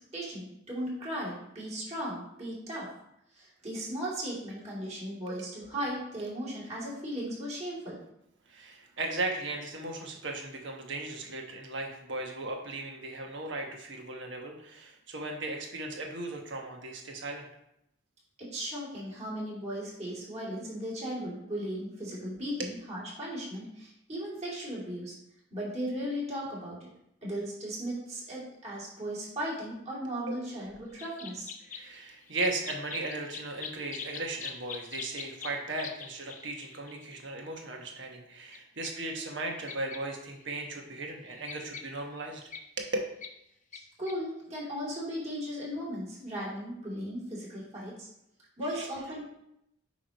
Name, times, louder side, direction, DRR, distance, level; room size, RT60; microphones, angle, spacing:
voice 1, 0.1-2.9 3.3-8.0 18.4-25.1 25.5-26.8 27.2-31.5 43.7-48.1 48.6-49.3, equal, 35° right, -7 dB, 3.0 m, -37 dB
voice 2, 8.5-17.5 30.3-30.5 31.7-42.5 42.8-42.9 48.7-48.9, right 2 dB, 65° right, 1 dB, 1.3 m, -37 dB
sound 1, 31.0-37.3 38.5-38.6 38.8-38.9 39.7-40.0 40.4-40.5 40.8-42.6 43.2-43.3 43.7-43.8 44.1-44.2, left 6 dB, 40° left, 0.6 m, -43 dB
8.6 x 3.1 x 5.3 m, 0.80 s
head